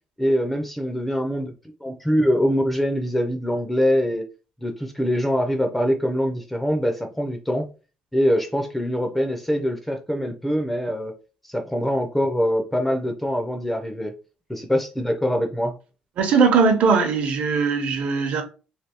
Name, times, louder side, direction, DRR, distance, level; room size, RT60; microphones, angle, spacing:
voice 1, 0.2-1.5 1.8-4.2 4.6-7.7 8.1-11.1 11.5-14.1 14.5-15.8, equal, 5° left, 0.5 m, -23 dB
voice 2, 16.2-18.4, right 5 dB, 55° right, 0.7 m, -19 dB
3.3 x 2.6 x 2.9 m
cardioid pair, 160°, 3 cm